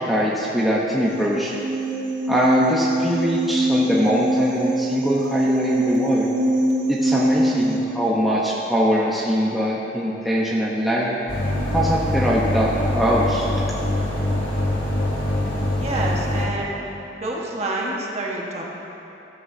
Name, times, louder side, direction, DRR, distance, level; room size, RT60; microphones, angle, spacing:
voice 1, 0.1-1.5 2.3-6.3 6.9-11.2 11.7-13.5, equal, ahead, -6 dB, 0.9 m, -22 dB
sound 1, 1.0-7.8, right 1 dB, 70° right, 1.4 m, -23 dB
sound 2, 11.3-16.5, left 1 dB, 80° left, 2.9 m, -24 dB
voice 2, 15.8-16.9 17.2-18.6, right 2 dB, 35° right, -3 dB, 1.5 m, -28 dB
14.5 x 13.5 x 2.8 m, 3.0 s
head